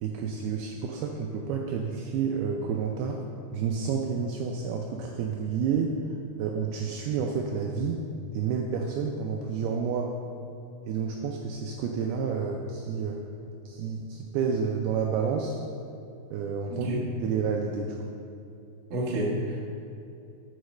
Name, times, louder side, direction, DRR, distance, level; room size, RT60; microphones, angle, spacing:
voice 1, 0.0-3.2 3.5-6.0 6.4-8.0 8.3-10.1 10.9-13.2 13.7-15.6 16.3-16.9 17.2-18.1, right 6 dB, 80° right, 1 dB, 2.3 m, -30 dB
voice 2, 16.7-17.0 18.9-19.7, right 1 dB, 60° right, -4 dB, 1.4 m, -29 dB
8.0 x 6.6 x 6.3 m, 2.6 s
omnidirectional pair, 5.0 m